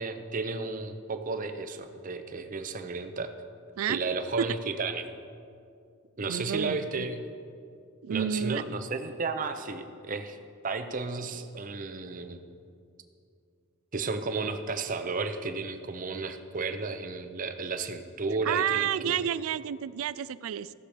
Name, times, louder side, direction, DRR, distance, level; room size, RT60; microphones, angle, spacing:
voice 1, 0.0-3.3 3.9-5.1 6.2-7.2 8.1-10.4 10.6-12.4 13.9-19.2, right 3 dB, 40° right, 8 dB, 0.7 m, -33 dB
voice 2, 6.3-7.1 8.0-8.6 18.5-20.7, right 9 dB, 85° right, 17 dB, 0.3 m, -30 dB
16.0 x 6.8 x 5.0 m, 2.4 s
head